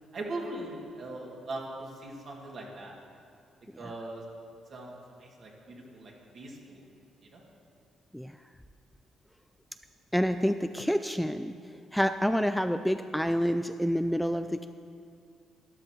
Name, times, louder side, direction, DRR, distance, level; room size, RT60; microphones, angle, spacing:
voice 1, 0.1-3.0 3.8-4.2 4.7-6.9 7.2-7.4, right 2 dB, 55° right, -2 dB, 2.2 m, -40 dB
voice 2, 10.1-11.5 11.9-14.7, equal, ahead, 9 dB, 0.3 m, -28 dB
12.5 x 11.5 x 3.1 m, 2.3 s
cardioid pair, 90°, 0 cm